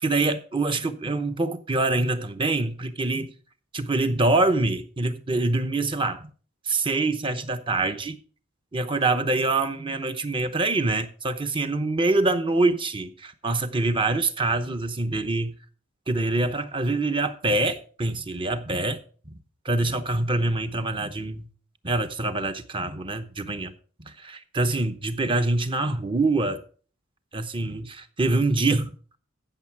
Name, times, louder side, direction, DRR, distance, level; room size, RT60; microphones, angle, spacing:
voice 1, 0.0-3.3 3.7-6.3 6.7-8.2 8.7-15.5 16.1-19.0 19.3-19.4 19.6-21.5 21.8-23.7 24.1-26.6 27.3-29.0, right 2 dB, 25° right, 0.8 m, -25 dB
14.5 x 6.5 x 4.7 m
head